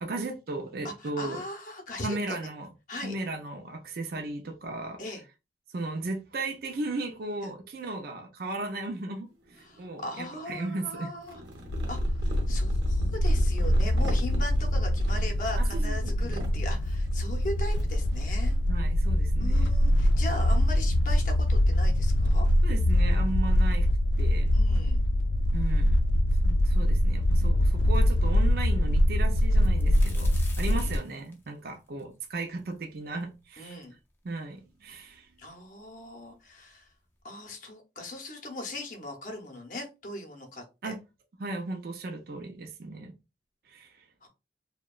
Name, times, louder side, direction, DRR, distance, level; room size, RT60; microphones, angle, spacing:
voice 1, 0.0-1.4 2.0-2.7 3.0-5.0 5.7-9.3 9.8-11.1 15.6-16.1 18.7-19.7 22.6-23.9 24.2-24.5 25.5-26.0 26.4-30.3 30.6-33.8 34.2-35.3 40.8-41.0 41.4-43.1 43.7-43.9, right 2 dB, 55° right, 0.4 m, -36 dB
voice 2, 0.8-2.5 2.9-3.2 5.0-5.2 7.4-7.5 9.6-11.4 11.9-18.6 19.4-22.5 24.5-25.0 30.7-31.0 33.6-33.9 35.4-36.9 37.2-40.9 44.2-44.3, left 1 dB, 45° left, 0.7 m, -39 dB
sound 1, 9.4-10.3 11.0-18.8, right 1 dB, 85° right, 0.8 m, -42 dB
sound 2, 11.7-31.0, left 1 dB, 80° left, 0.3 m, -24 dB
sound 3, 29.4-33.2 33.7-33.8 34.6-34.7 34.9-35.6 36.5-36.6 37.0-37.2, left 3 dB, 10° left, 0.4 m, -48 dB
2.8 x 2.2 x 2.3 m
head